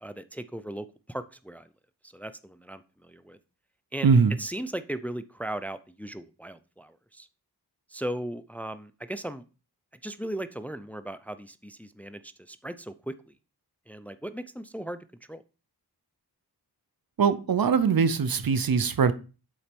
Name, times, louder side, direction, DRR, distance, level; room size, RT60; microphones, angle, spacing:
voice 1, 0.0-1.7 2.1-3.4 3.9-4.1 4.4-7.3 7.9-9.4 10.0-13.3 13.9-15.0 15.3-15.4, right 1 dB, 5° left, 0.5 m, -37 dB
voice 2, 4.0-4.4 17.2-19.1, right 5 dB, 60° right, 0.8 m, -22 dB
7.1 x 4.3 x 5.2 m
cardioid pair, 45°, 39 cm